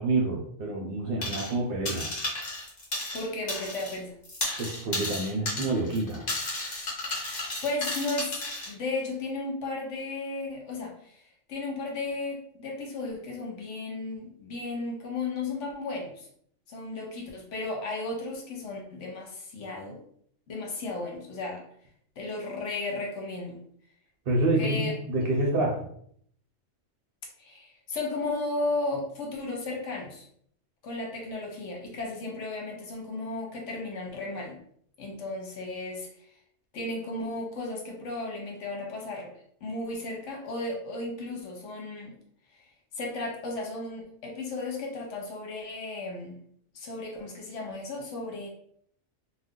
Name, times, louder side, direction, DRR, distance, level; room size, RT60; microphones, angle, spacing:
voice 1, 0.0-2.1 4.6-6.3 24.3-25.9, right 2 dB, 60° right, -1 dB, 0.7 m, -28 dB
sound 1, 1.2-1.6 1.9-4.0 4.2-8.7, left 2 dB, 45° left, 1.1 m, -33 dB
voice 2, 3.1-4.1 7.6-8.4 8.7-11.2 11.5-16.3 16.7-20.0 20.5-21.6 22.2-23.6 24.6-24.9 27.4-30.3 30.8-34.6 35.0-36.1 36.7-39.3 39.6-42.2 43.0-46.4 46.7-48.5, left 2 dB, 75° left, 0 dB, 1.1 m, -34 dB
2.5 x 2.2 x 3.6 m, 0.65 s
omnidirectional pair, 1.3 m